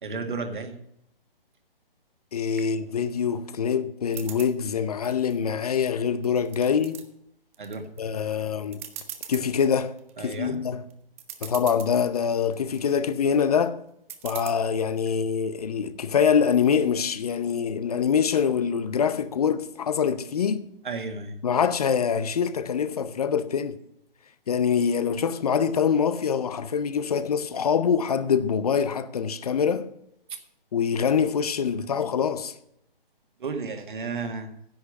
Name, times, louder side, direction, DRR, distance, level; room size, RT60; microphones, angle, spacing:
voice 1, 0.0-0.8 7.6-7.9 10.2-10.6 20.8-21.4 33.4-34.5, right 4 dB, 55° right, 1.9 m, -33 dB
voice 2, 2.3-7.0 8.0-8.8 9.3-9.9 10.2-10.8 11.4-13.8 14.2-20.6 21.4-23.8 24.5-29.9 30.7-32.5, left 7 dB, 40° left, 0.7 m, -24 dB
sound 1, 4.1-4.5 5.0-5.8 6.2-7.0 7.5-8.0 8.3-8.4 8.7-9.5 10.0-10.3 10.9-11.0 11.2-11.9 12.4-13.0 14.1-14.5, right 10 dB, 15° right, 0.5 m, -40 dB
10.5 x 8.2 x 6.4 m
figure-of-eight pair, 140°, 29 cm